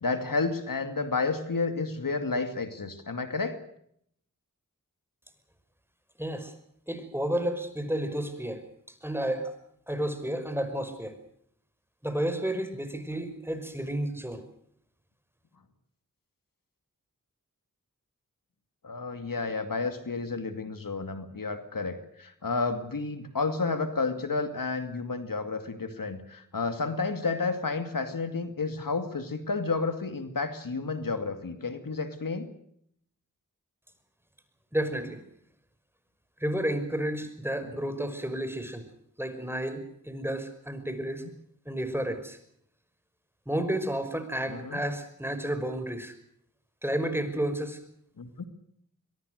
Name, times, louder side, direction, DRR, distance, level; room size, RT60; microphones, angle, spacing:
voice 1, 0.0-3.6 18.8-32.5 37.6-37.8 41.2-41.3 43.6-43.7 44.5-44.8 48.2-48.4, left 4 dB, 90° left, 9 dB, 2.5 m, -31 dB
voice 2, 6.2-6.5 6.9-9.6 9.9-11.2 12.0-14.4 34.7-35.2 36.4-38.9 39.2-41.2 41.7-42.4 43.5-46.1 46.8-47.8, right 1 dB, 5° right, 10 dB, 5.5 m, -31 dB
24.0 x 22.0 x 6.5 m, 0.68 s
wide cardioid pair, 45°, 33 cm